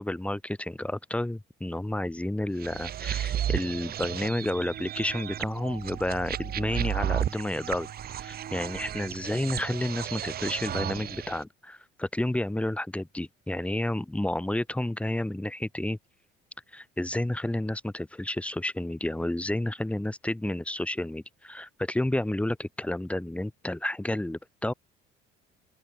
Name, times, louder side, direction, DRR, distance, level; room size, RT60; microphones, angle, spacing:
voice 1, 0.0-7.9 8.2-16.0 16.7-24.7, left 1 dB, 5° left, 5.3 m, -31 dB
sound 1, 2.6-11.4, right 10 dB, 50° right, 5.6 m, -33 dB
open air
cardioid pair, 115°, 20 cm